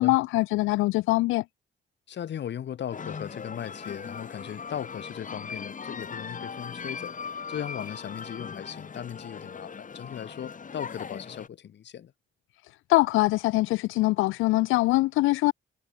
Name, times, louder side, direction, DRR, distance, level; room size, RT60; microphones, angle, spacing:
voice 1, 0.0-1.4 12.9-15.5, left 19 dB, 90° left, 0.4 m, -23 dB
voice 2, 2.1-7.2 7.5-12.1, left 9 dB, 60° left, 4.8 m, -37 dB
sound 1, 2.9-11.5, left 6 dB, 40° left, 7.1 m, -39 dB
cardioid pair, 90°, 20 cm